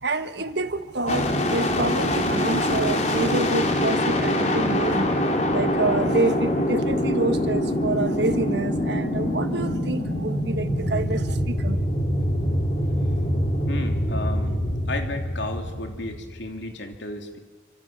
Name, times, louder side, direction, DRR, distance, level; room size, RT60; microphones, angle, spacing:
voice 1, 0.0-5.1 5.5-11.8, right 2 dB, 65° right, 1.5 m, -27 dB
sound 1, 1.1-16.7, left 1 dB, 35° left, 3.0 m, -24 dB
voice 2, 13.7-14.6 14.9-17.4, left 2 dB, 70° left, 3.1 m, -33 dB
28.0 x 26.0 x 7.4 m
head